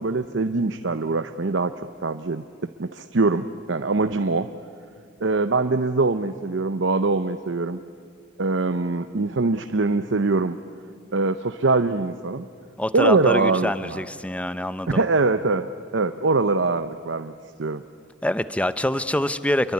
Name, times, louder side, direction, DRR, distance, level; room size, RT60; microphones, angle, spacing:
voice 1, 0.0-1.7 2.0-4.5 5.2-7.8 8.4-10.6 11.1-12.5 12.9-14.0 14.9-17.3 17.6-17.8, right 3 dB, 75° right, 8 dB, 0.8 m, -23 dB
voice 2, 12.8-15.0 18.2-19.7, left 1 dB, 5° left, 13 dB, 0.7 m, -25 dB
27.5 x 22.5 x 9.6 m, 2.1 s
head